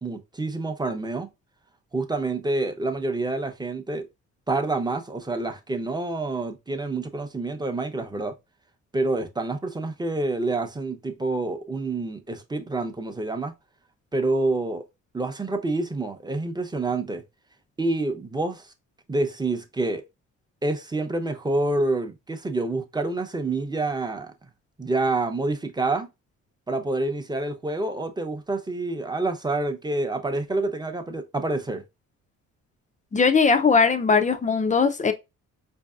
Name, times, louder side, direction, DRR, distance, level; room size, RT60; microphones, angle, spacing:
voice 1, 0.0-1.3 1.9-4.1 4.5-8.3 8.9-13.5 14.1-14.8 15.1-17.2 17.8-18.7 19.1-20.0 20.6-24.5 24.8-26.1 26.7-31.8, right 2 dB, 15° right, 0.7 m, -27 dB
voice 2, 33.1-35.1, left 5 dB, 25° left, 0.5 m, -19 dB
4.5 x 2.7 x 2.3 m
cardioid pair, 90°, 30 cm